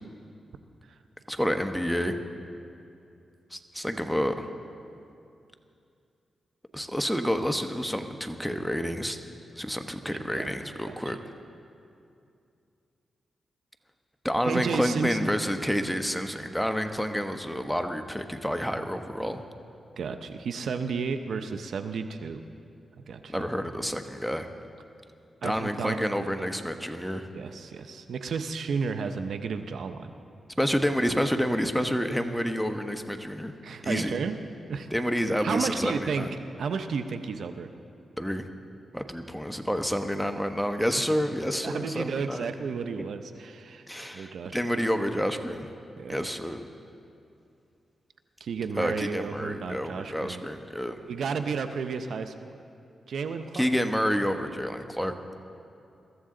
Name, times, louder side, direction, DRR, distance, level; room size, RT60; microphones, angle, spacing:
voice 1, 1.3-2.2 3.5-4.5 6.7-9.2 9.6-11.2 14.2-19.4 23.3-24.5 25.4-27.2 30.6-33.5 33.8-34.1 34.9-36.3 38.2-38.5 38.9-42.5 43.0-43.1 43.9-45.7 46.1-46.6 48.8-51.0 53.5-55.1, equal, ahead, 7 dB, 1.0 m, -29 dB
voice 2, 10.1-10.5 10.9-11.1 14.4-15.3 20.0-22.4 23.0-23.5 25.4-26.5 27.3-30.1 33.6-34.3 34.7-34.9 35.4-36.3 36.6-37.7 41.0-41.1 41.6-43.9 44.1-44.6 46.0-46.3 48.4-50.4 51.1-52.3 53.1-53.7, right 5 dB, 80° right, 9 dB, 0.7 m, -32 dB
22.5 x 14.0 x 3.8 m, 2.5 s
cardioid pair, 65°, 0 cm